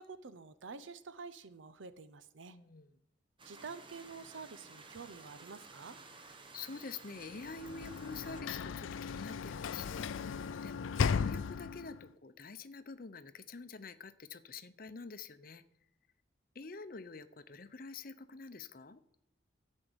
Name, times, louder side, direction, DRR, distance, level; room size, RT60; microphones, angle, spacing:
voice 1, 0.0-2.6 3.4-6.0, right 4 dB, 75° right, 14 dB, 0.6 m, -48 dB
voice 2, 2.5-3.0 6.2-15.6 16.5-19.0, left 4 dB, 45° left, 11 dB, 0.7 m, -47 dB
sound 1, 3.4-8.4, right 3 dB, 25° right, 1.0 m, -54 dB
Sliding door / Slam, 7.3-12.0, left 6 dB, 85° left, 0.4 m, -36 dB
12.5 x 5.4 x 7.9 m, 0.79 s
head